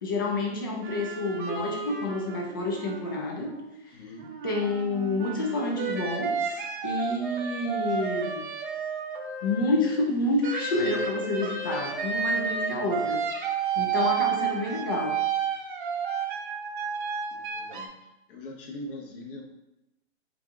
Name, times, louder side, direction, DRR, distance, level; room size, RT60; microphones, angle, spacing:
voice 1, 0.0-3.5 3.9-4.0 4.4-8.4 9.4-13.2 13.5-15.2, left 2 dB, 20° left, 0 dB, 0.3 m, -29 dB
sound 1, 0.8-3.8 4.2-10.0 10.4-17.9, right 6 dB, 45° right, 0.7 m, -31 dB
voice 2, 3.9-4.3 17.3-17.9 18.3-19.6, left 1 dB, 50° left, 0 dB, 1.0 m, -42 dB
4.5 x 2.4 x 3.6 m, 0.91 s
hypercardioid pair, 145°, 35 cm